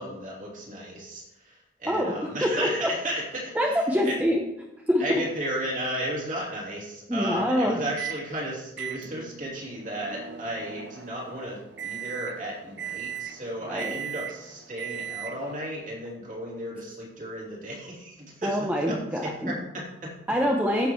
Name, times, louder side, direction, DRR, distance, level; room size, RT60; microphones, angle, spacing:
voice 1, 0.0-3.7 4.0-4.1 5.0-20.1, right 1 dB, 40° right, -4 dB, 3.2 m, -34 dB
voice 2, 3.5-4.4 4.9-5.0 7.1-7.8 13.7-13.9 18.4-19.5 20.3-20.9, equal, 10° right, -1 dB, 0.8 m, -25 dB
Microwave oven, 8.0-8.3 8.8-15.6, right 9 dB, 65° right, 0.7 m, -38 dB
14.5 x 6.7 x 3.2 m, 0.86 s
head